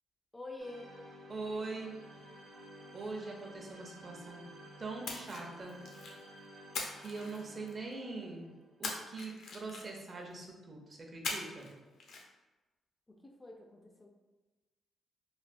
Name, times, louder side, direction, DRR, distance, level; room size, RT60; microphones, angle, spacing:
voice 1, 0.3-1.0 13.1-14.1, left 2 dB, 15° left, 1 dB, 0.3 m, -47 dB
sound 1, 0.6-9.0, equal, 80° right, 0.6 m, -54 dB
voice 2, 1.3-2.0 2.6-4.4 4.8-5.8 6.9-8.5 8.8-11.7, right 3 dB, 40° right, 0 dB, 0.6 m, -43 dB
Splash splatter, 5.0-6.2 6.7-7.9 8.8-10.1 11.2-11.7 12.0-12.2, left 3 dB, 70° left, 0.5 m, -41 dB
3.2 x 2.3 x 2.5 m, 1.2 s
cardioid pair, 105°, 0 cm